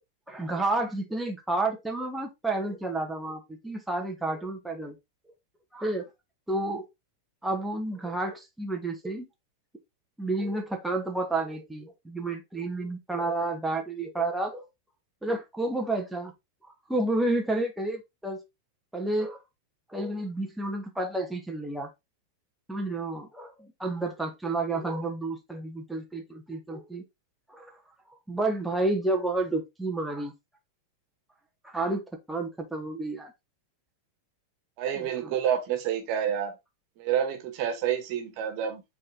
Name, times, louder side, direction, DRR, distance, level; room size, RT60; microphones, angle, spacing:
voice 1, 0.3-5.0 5.7-6.1 6.5-6.9 7.4-9.3 10.2-14.6 15.2-16.3 16.9-18.4 18.9-19.4 19.9-21.9 22.7-27.0 27.5-27.8 28.1-30.3 31.6-32.0 32.3-33.3 35.0-35.4, right 2 dB, 5° right, 1.7 m, -30 dB
voice 2, 34.8-36.6 37.0-38.8, right 9 dB, 45° right, 1.8 m, -28 dB
8.4 x 4.2 x 3.9 m
figure-of-eight pair, 90°, 0 cm